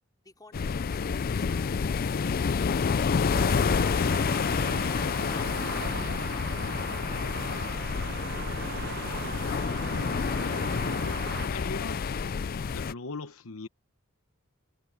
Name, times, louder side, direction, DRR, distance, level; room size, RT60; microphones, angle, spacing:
voice 1, 0.2-0.3, left 2 dB, 20° left, 3.0 m, -56 dB
sound 1, 0.5-12.9, left 5 dB, 45° left, 0.4 m, -28 dB
sound 2, 3.3-11.5, right 5 dB, 50° right, 1.0 m, -39 dB
voice 2, 11.5-12.1 12.6-13.7, left 3 dB, 70° left, 1.1 m, -38 dB
head